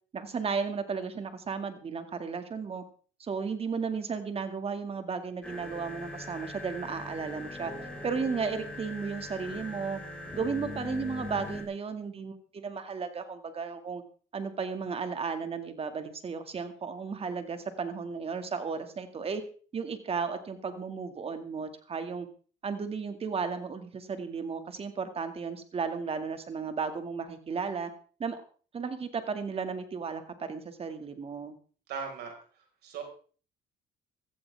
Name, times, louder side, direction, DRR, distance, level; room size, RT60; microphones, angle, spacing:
voice 1, 0.1-2.8 3.2-7.7 8.0-10.0 10.3-14.0 14.3-19.4 19.7-22.3 22.6-27.9 28.2-28.4 28.7-31.6, right 5 dB, 35° right, 8 dB, 2.2 m, -34 dB
sound 1, 5.4-11.6, left 2 dB, 5° left, 5.5 m, -41 dB
voice 2, 31.9-33.0, right 6 dB, 75° right, 3 dB, 5.3 m, -39 dB
16.5 x 14.0 x 3.6 m, 0.41 s
cardioid pair, 110°, 17 cm